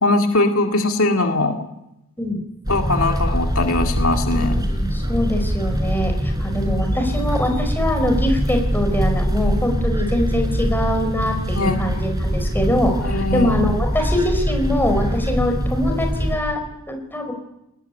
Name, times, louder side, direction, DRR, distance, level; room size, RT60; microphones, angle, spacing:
voice 1, 0.0-1.6 2.7-4.7 11.5-11.8 13.0-13.6, left 2 dB, 70° left, 4 dB, 2.3 m, -20 dB
sound 1, 2.6-16.4, equal, 20° right, 4.5 m, -23 dB
voice 2, 4.4-16.6 16.9-17.3, left 1 dB, 10° left, 4 dB, 4.8 m, -23 dB
21.0 x 20.0 x 9.9 m, 0.88 s
head